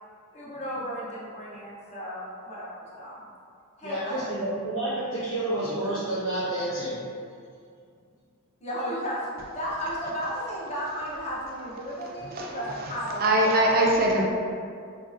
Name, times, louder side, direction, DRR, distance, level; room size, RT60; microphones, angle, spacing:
voice 1, 0.3-3.3 3.8-4.2 8.6-9.3 9.5-13.5, equal, 30° left, -7 dB, 0.6 m, -34 dB
voice 2, 3.8-7.0, right 1 dB, 85° left, -15 dB, 1.1 m, -29 dB
voice 3, 12.2-14.2, right 1 dB, 40° right, -1 dB, 0.4 m, -24 dB
3.0 x 2.6 x 2.5 m, 2.3 s
head